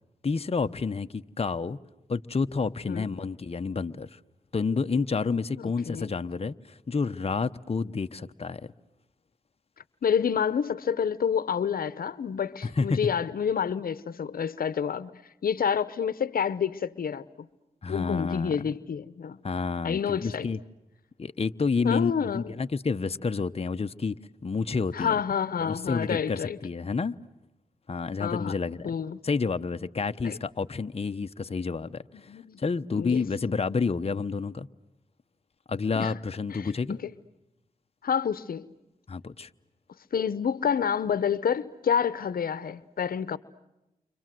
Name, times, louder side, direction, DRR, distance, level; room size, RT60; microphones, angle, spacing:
voice 1, 0.2-1.8 2.1-4.2 4.5-8.6 12.6-13.0 17.8-18.5 19.4-20.6 21.2-25.1 25.6-27.2 27.9-28.9 29.2-32.3 32.6-34.7 35.7-37.0 39.1-39.5, left 4 dB, 40° left, 0.9 m, -29 dB
voice 2, 5.5-6.1 10.0-15.1 15.4-17.5 17.9-19.4 19.8-20.5 21.8-22.5 24.9-26.6 28.2-28.6 28.8-29.2 30.2-30.4 32.1-32.6 32.9-33.2 36.0-36.1 36.5-36.7 37.0-37.1 38.0-38.7 40.1-43.4, left 7 dB, 80° left, 0.9 m, -28 dB
30.0 x 25.5 x 7.7 m
cardioid pair, 55°, 15 cm